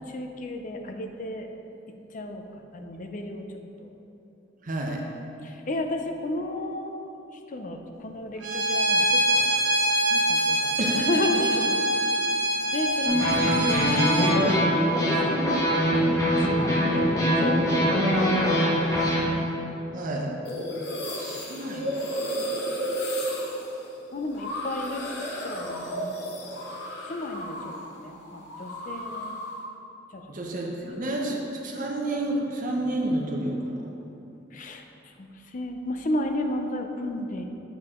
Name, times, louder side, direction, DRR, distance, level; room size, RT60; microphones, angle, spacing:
voice 1, 0.1-1.5 2.1-2.4 2.7-3.4 3.8-3.9 5.4-7.2 7.5-9.5 10.1-11.6 12.7-14.7 15.1-15.7 16.1-19.0 24.1-25.0 25.4-26.2 27.1-29.4 30.1-30.2 34.5-34.8 35.2-37.4, left 1 dB, 45° left, 5 dB, 0.5 m, -33 dB
voice 2, 4.6-5.0 10.8-11.0 19.9-20.3 21.1-21.9 30.3-33.6, right 1 dB, 45° right, 0 dB, 0.8 m, -30 dB
Bowed string instrument, 8.4-14.4, right 1 dB, 70° right, 0.9 m, -24 dB
sound 1, 13.1-19.2, equal, 20° left, 1.1 m, -23 dB
sound 2, 20.4-27.9 28.1-29.6, equal, 65° left, 1.0 m, -33 dB
8.1 x 4.7 x 3.7 m, 2.8 s
head